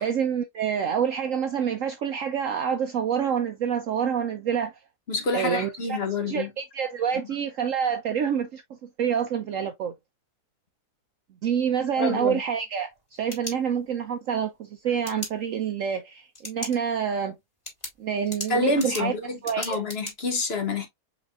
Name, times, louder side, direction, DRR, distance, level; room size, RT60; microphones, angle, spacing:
voice 1, 0.0-4.7 5.3-6.0 6.3-9.9 11.4-12.9 13.2-17.4 18.0-19.1 19.4-19.8, right 8 dB, 65° right, 0.9 m, -27 dB
voice 2, 5.1-6.5 12.0-12.4 18.5-20.9, left 3 dB, 45° left, 1.0 m, -27 dB
sound 1, 12.9-14.1 15.0-15.3 16.3-16.8 17.1-17.2 17.6-20.1, left 1 dB, 25° left, 2.5 m, -37 dB
5.1 x 4.1 x 2.4 m
omnidirectional pair, 1.7 m